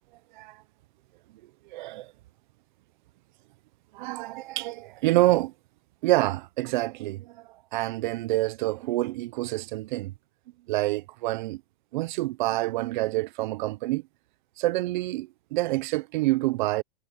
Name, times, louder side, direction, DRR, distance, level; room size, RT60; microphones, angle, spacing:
voice 1, 1.7-2.1 3.9-5.5 6.0-7.3 7.7-10.1 10.7-11.6 11.9-14.0 14.6-16.8, right 18 dB, 45° right, 0.9 m, -27 dB
hypercardioid pair, 155°, 33 cm